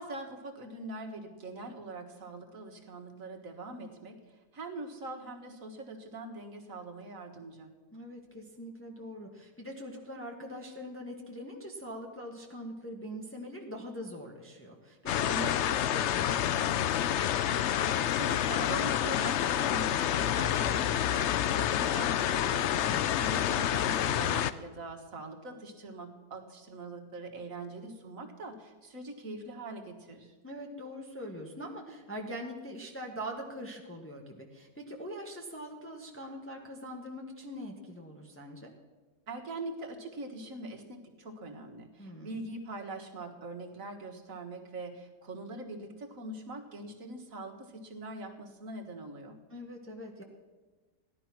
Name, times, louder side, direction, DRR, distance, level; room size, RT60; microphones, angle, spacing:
voice 1, 0.0-4.2 4.5-7.7 18.2-22.7 23.1-30.3 39.3-49.4, right 2 dB, 55° right, 3 dB, 2.0 m, -42 dB
voice 2, 7.9-17.4 22.9-23.3 30.4-38.7 42.0-42.5 49.5-50.2, equal, 10° left, 0 dB, 1.4 m, -43 dB
sound 1, 15.1-24.5, left 10 dB, 70° left, 0.7 m, -28 dB
15.5 x 11.5 x 6.0 m, 1.3 s
omnidirectional pair, 1.7 m